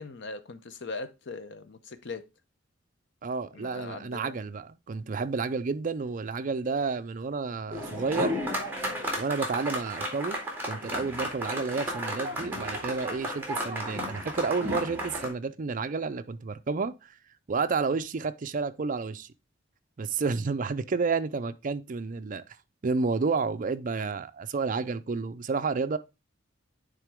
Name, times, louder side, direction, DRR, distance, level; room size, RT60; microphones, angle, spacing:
voice 1, 0.0-2.2 3.5-4.4, left 3 dB, 65° left, 0.8 m, -40 dB
voice 2, 3.2-8.4 9.2-10.4 10.7-16.9 17.5-19.3 20.0-22.4 22.8-26.0, right 4 dB, 40° right, 0.5 m, -30 dB
sound 1, 7.7-15.3, equal, 10° right, 2.1 m, -33 dB
9.1 x 3.7 x 3.5 m
head